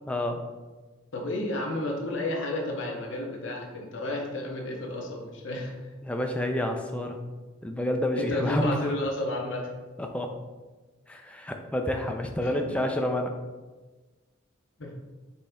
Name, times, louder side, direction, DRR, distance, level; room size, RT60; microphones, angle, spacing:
voice 1, 0.1-0.4 6.0-7.2 7.6-8.8 10.0-10.4 11.1-13.3, left 1 dB, 5° left, 3 dB, 0.3 m, -29 dB
voice 2, 1.1-5.8 8.1-9.7 12.4-12.7 14.8-14.9, left 1 dB, 65° left, 0 dB, 0.8 m, -31 dB
4.2 x 3.3 x 3.5 m, 1.3 s
head